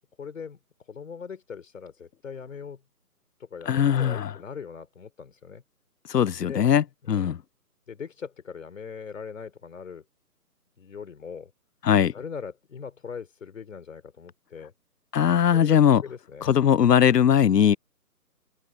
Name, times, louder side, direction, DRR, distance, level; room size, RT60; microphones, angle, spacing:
voice 1, 0.2-0.6 0.9-2.8 3.4-5.6 6.5-6.7 7.0-7.3 7.9-10.0 10.8-11.5 12.1-14.7 15.5-15.8 16.0-16.5, left 6 dB, 55° left, 3.8 m, -40 dB
voice 2, 3.7-4.3 6.1-7.4 11.8-12.1 15.1-16.0 16.4-17.8, left 9 dB, 90° left, 0.6 m, -20 dB
open air
figure-of-eight pair, 150°, 47 cm